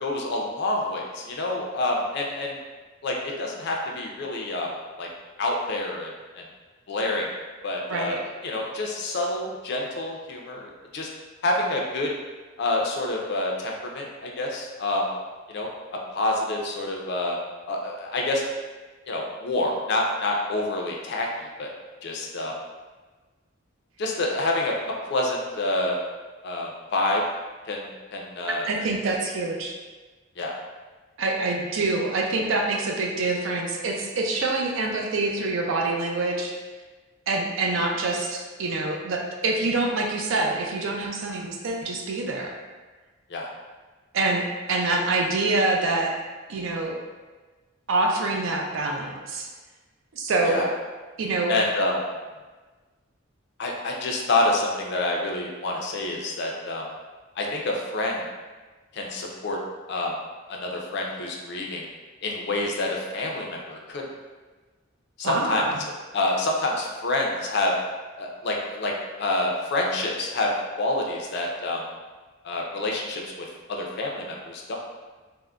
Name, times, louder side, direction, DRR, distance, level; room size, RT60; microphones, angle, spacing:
voice 1, 0.0-2.6 3.0-4.7 5.0-5.1 5.4-6.1 6.4-6.5 6.9-7.3 7.6-11.1 11.4-12.1 12.6-15.1 15.5-15.7 16.1-17.4 17.7-18.4 19.1-21.7 22.0-22.5 24.0-24.7 25.1-26.0 26.4-27.2 27.7-28.7 30.4-30.5 43.3-43.5 50.4-50.7 51.5-52.0 53.6-56.9 57.4-58.2 58.9-59.6 59.9-60.2 60.5-61.9 62.2-64.0 65.2-65.6 66.1-67.7 68.2-70.5 70.8-71.8 72.4-74.8, left 2 dB, 55° left, 0 dB, 0.4 m, -27 dB
voice 2, 7.9-8.2 28.4-29.8 31.2-36.5 37.3-42.5 44.1-46.1 46.5-46.9 47.9-49.5 50.1-50.6 51.2-51.5 65.2-65.8, right 2 dB, 65° right, 1 dB, 0.4 m, -26 dB
3.5 x 2.0 x 2.3 m, 1.3 s
head